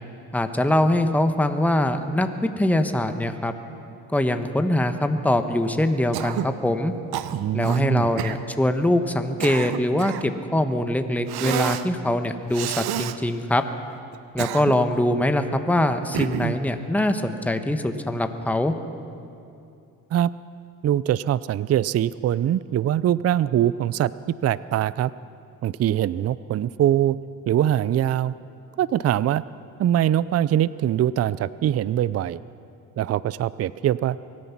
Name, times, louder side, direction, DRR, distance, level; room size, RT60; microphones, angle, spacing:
voice 1, 0.3-2.3 2.6-3.5 4.1-6.9 7.5-13.6 14.3-18.7, left 1 dB, 5° left, 7 dB, 1.1 m, -23 dB
Cough, 6.1-6.6 7.1-7.8 8.2-8.4 9.1-10.3 11.3-11.9 12.5-13.2 14.1-15.0 16.1-16.6, right 12 dB, 75° right, 0.7 m, -29 dB
voice 2, 7.3-8.1 20.1-20.3 20.8-24.1 24.4-25.1 25.6-27.2 27.5-28.3 28.8-29.4 29.8-32.4 33.0-34.2, right 11 dB, 40° right, 18 dB, 0.4 m, -22 dB
23.5 x 9.5 x 5.9 m, 2.6 s
supercardioid pair, 55°, 38 cm